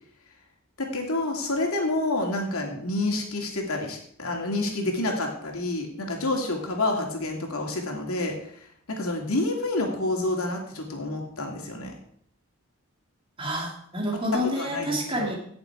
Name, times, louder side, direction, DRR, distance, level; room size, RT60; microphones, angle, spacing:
voice 1, 0.8-11.9 14.3-14.9 15.2-15.3, left 2 dB, 75° left, 1 dB, 2.7 m, -28 dB
voice 2, 13.4-15.4, equal, 25° right, 1 dB, 2.2 m, -28 dB
17.0 x 7.1 x 4.7 m, 0.65 s
head